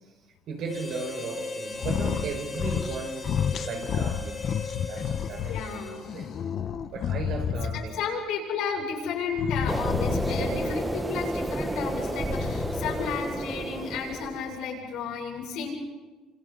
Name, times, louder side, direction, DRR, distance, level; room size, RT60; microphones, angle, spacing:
voice 1, 0.5-3.3 3.6-4.4 4.9-5.8 6.1-6.4 6.9-8.0 12.1-12.3, right 4 dB, 60° right, 3 dB, 5.4 m, -36 dB
Harmonica, 0.7-6.3, left 3 dB, 25° left, 4.1 m, -38 dB
sound 1, 1.7-2.3 2.5-3.0 3.2-5.6 6.0-8.0 9.3-10.7 12.2-13.2, left 8 dB, 50° left, 1.3 m, -30 dB
voice 2, 5.5-6.0 7.7-15.7, left 5 dB, 75° left, -1 dB, 7.5 m, -32 dB
sound 2, 9.7-14.5, right 1 dB, 10° right, 1.3 m, -31 dB
27.0 x 27.0 x 4.2 m, 1.3 s
cardioid pair, 120°, 0 cm